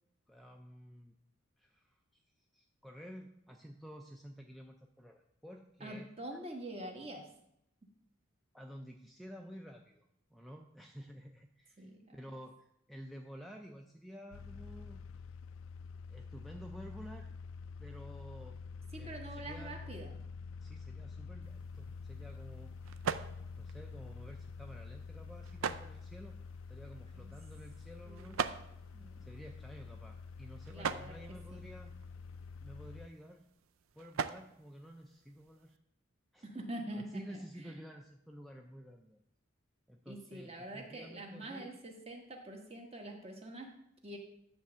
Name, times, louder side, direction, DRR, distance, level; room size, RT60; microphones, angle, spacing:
voice 1, 0.3-1.2 1.6-6.1 8.5-15.0 16.1-17.3 17.8-18.6 19.0-19.8 20.6-22.8 23.6-26.4 26.7-28.4 29.2-32.0 32.6-33.5 34.0-35.8 36.3-36.5 37.0-39.3 39.9-41.7, equal, ahead, 2 dB, 0.4 m, -51 dB
voice 2, 5.8-7.3 11.8-12.2 18.9-20.2 27.1-27.3 28.0-28.4 28.9-29.3 30.7-31.1 31.5-31.6 36.4-37.7 40.1-43.7 44.0-44.2, right 1 dB, 30° right, 2 dB, 1.2 m, -45 dB
sound 1, 14.3-33.1, left 5 dB, 75° left, 0.3 m, -48 dB
sound 2, 21.4-35.8, right 6 dB, 75° right, 0.4 m, -44 dB
10.0 x 3.5 x 6.8 m, 0.79 s
head